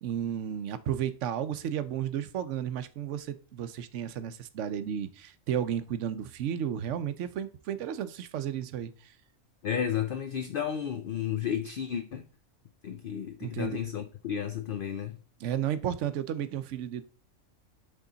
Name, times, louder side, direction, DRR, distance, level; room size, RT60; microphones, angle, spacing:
voice 1, 0.0-9.1 13.4-13.8 15.4-17.0, right 9 dB, 70° right, 0.9 m, -33 dB
voice 2, 9.6-12.2 12.8-15.2, left 9 dB, 60° left, 0.6 m, -32 dB
8.3 x 3.7 x 3.8 m
omnidirectional pair, 1.4 m